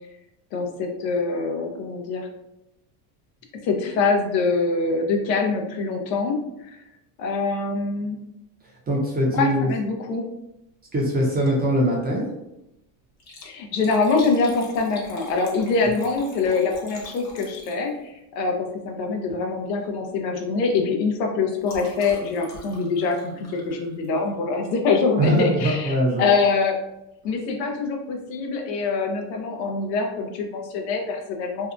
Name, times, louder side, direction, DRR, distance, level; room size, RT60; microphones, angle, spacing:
voice 1, 0.5-2.3 3.5-6.8 7.2-8.2 9.3-10.3 13.4-26.8 27.2-31.7, left 4 dB, 85° left, 3 dB, 0.7 m, -24 dB
voice 2, 8.9-9.7 10.9-12.3 25.2-26.3, equal, 20° right, -3 dB, 0.5 m, -22 dB
Liquid, 11.4-11.7 12.1-12.2 13.1-18.2 19.2-19.5 19.8-20.1 20.3-24.4 25.4-25.6 26.2-26.3 26.4-26.5, left 2 dB, 35° left, 0.8 m, -44 dB
2.7 x 2.2 x 2.4 m, 0.88 s
supercardioid pair, 115°, 48 cm